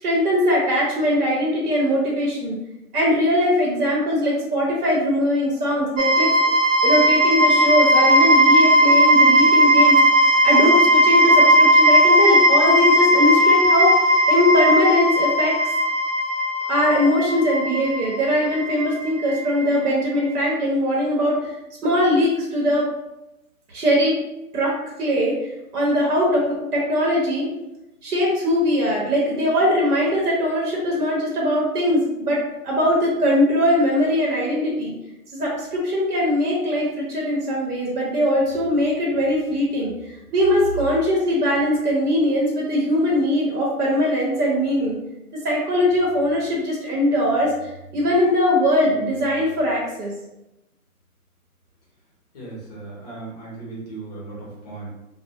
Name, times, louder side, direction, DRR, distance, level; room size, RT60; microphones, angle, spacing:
voice 1, 0.0-2.6 2.9-6.3 6.8-10.0 10.4-13.9 14.3-15.6 16.7-21.5 21.8-22.9 23.7-24.2 24.5-27.5 28.0-34.9 35.3-39.9 40.3-45.0 45.3-50.1, equal, 85° right, -3 dB, 0.9 m, -21 dB
sound 1, 6.0-19.9, equal, 60° right, 0.6 m, -17 dB
voice 2, 52.3-54.9, right 3 dB, 30° left, -5 dB, 0.7 m, -36 dB
2.2 x 2.1 x 2.7 m, 0.93 s
hypercardioid pair, 155°, 44 cm